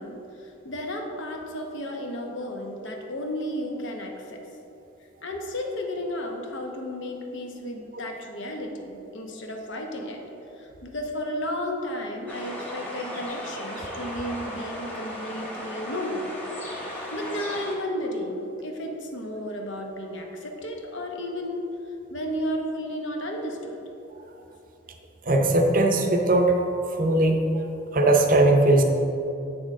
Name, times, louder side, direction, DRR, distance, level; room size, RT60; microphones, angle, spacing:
voice 1, 0.0-4.4 5.2-10.2 10.6-16.3 17.1-21.6 22.1-23.8, equal, 75° left, 2 dB, 0.9 m, -33 dB
sound 1, 12.3-17.7, equal, 10° left, 1.1 m, -36 dB
voice 2, 25.3-26.5 26.9-27.4 27.9-28.8, right 2 dB, 45° right, 3 dB, 0.6 m, -19 dB
7.8 x 6.2 x 3.6 m, 2.8 s
head